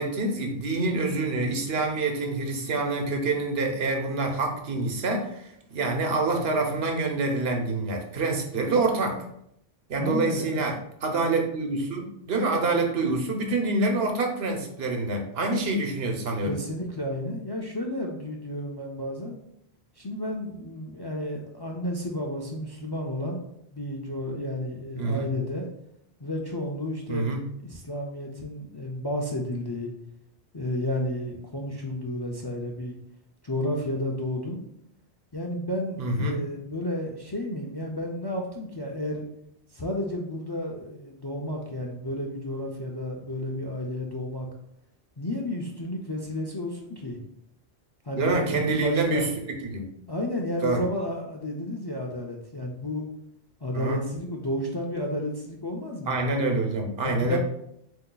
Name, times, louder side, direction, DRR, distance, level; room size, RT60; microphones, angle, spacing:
voice 1, 0.0-9.2 9.9-16.6 24.9-25.3 27.1-27.4 36.0-36.4 48.2-49.3 49.6-49.9 50.6-50.8 53.7-54.0 56.1-57.4, right 3 dB, 70° right, 2 dB, 1.0 m, -26 dB
voice 2, 9.9-10.6 16.4-19.4 20.0-23.4 23.7-25.7 26.2-29.9 30.5-33.0 33.4-34.6 35.3-39.2 39.7-44.5 45.2-47.2 48.0-49.3 50.1-53.1 53.6-56.2 57.0-57.4, left 1 dB, 35° left, 0 dB, 0.4 m, -32 dB
7.7 x 2.7 x 2.3 m, 0.75 s
omnidirectional pair, 1.1 m